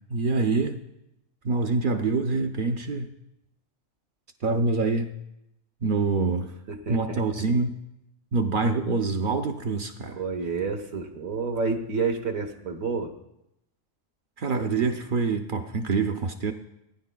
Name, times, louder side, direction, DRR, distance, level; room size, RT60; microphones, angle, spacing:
voice 1, 0.1-0.8 1.4-3.1 4.4-5.1 5.8-6.5 6.9-7.8 8.3-10.2 14.4-16.5, right 4 dB, 60° right, 6 dB, 0.5 m, -25 dB
voice 2, 6.9-7.2 10.1-13.1, right 4 dB, 80° right, 5 dB, 1.5 m, -29 dB
19.5 x 10.0 x 2.2 m, 0.84 s
omnidirectional pair, 1.4 m